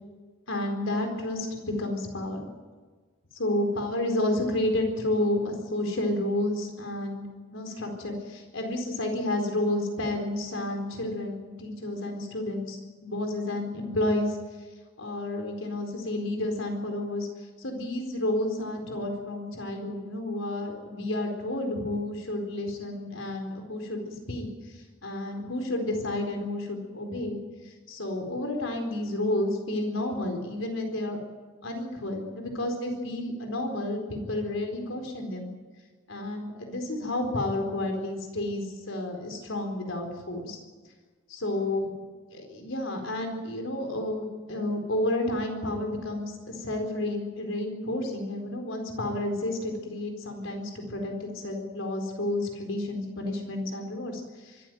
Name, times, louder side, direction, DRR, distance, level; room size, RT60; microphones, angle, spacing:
voice 1, 0.5-2.5 3.3-7.2 7.5-14.4 15.0-17.3 17.6-24.5 25.0-27.4 27.9-31.2 31.6-35.5 36.1-40.6 41.3-54.5, left 1 dB, 85° left, 4 dB, 4.3 m, -31 dB
24.5 x 14.5 x 9.3 m, 1.4 s
head